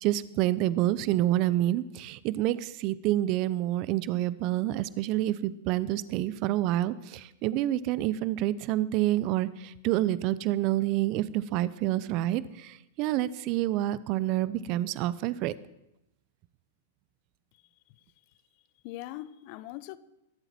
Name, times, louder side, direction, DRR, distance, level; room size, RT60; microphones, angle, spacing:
voice 1, 0.0-15.5, right 14 dB, 45° right, 0.6 m, -28 dB
voice 2, 17.5-18.0 18.8-20.0, left 15 dB, 50° left, 0.7 m, -42 dB
22.0 x 8.0 x 4.4 m
hypercardioid pair, 105°, 0 cm